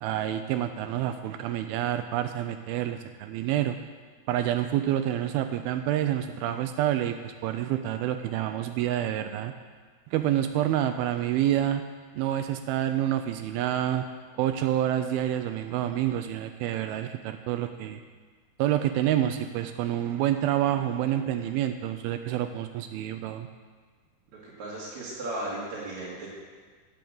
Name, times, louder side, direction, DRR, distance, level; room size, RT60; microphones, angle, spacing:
voice 1, 0.0-3.8 4.3-9.5 10.1-11.8 12.1-14.1 14.3-18.0 18.6-23.5, right 12 dB, 85° right, 8 dB, 2.2 m, -28 dB
voice 2, 24.4-26.3, right 1 dB, 50° right, -7 dB, 2.8 m, -35 dB
10.5 x 6.5 x 7.7 m, 1.5 s
omnidirectional pair, 4.7 m